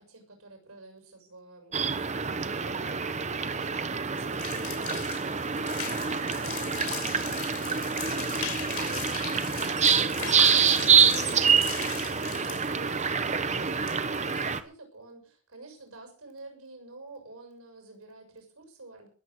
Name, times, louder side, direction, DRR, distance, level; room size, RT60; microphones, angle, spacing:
voice 1, 0.0-19.1, right 2 dB, 85° right, 4 dB, 6.9 m, -50 dB
sound 1, 1.7-14.6, right 6 dB, 35° right, 1.0 m, -26 dB
sound 2, 4.3-14.6, left 9 dB, 90° left, 3.7 m, -39 dB
20.0 x 7.9 x 6.6 m, 0.43 s
head